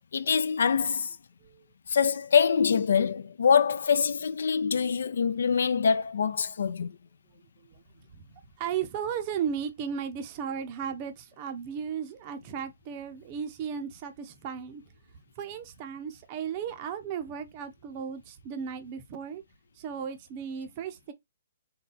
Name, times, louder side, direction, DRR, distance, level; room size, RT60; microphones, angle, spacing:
voice 1, 0.1-1.2 1.9-6.9, left 6 dB, 75° left, 0.4 m, -24 dB
voice 2, 8.6-14.8 15.4-19.4 19.8-21.1, right 7 dB, 25° right, 0.5 m, -35 dB
3.9 x 2.2 x 3.8 m
hypercardioid pair, 165°, 0 cm